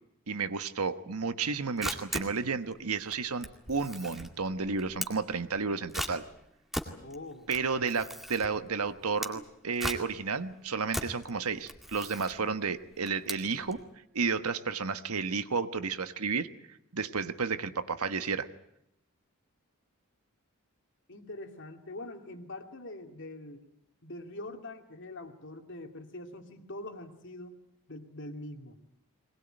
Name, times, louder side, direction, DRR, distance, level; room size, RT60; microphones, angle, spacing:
voice 1, 0.3-6.2 7.5-13.8 14.1-16.5 16.9-18.5, right 5 dB, 80° right, 11 dB, 1.3 m, -32 dB
Camera, 1.4-13.9, equal, ahead, 2.1 m, -40 dB
voice 2, 7.0-7.5 21.1-23.6 24.0-27.6 27.9-28.8, left 2 dB, 55° left, 5 dB, 2.6 m, -43 dB
22.0 x 20.0 x 9.1 m, 0.79 s
head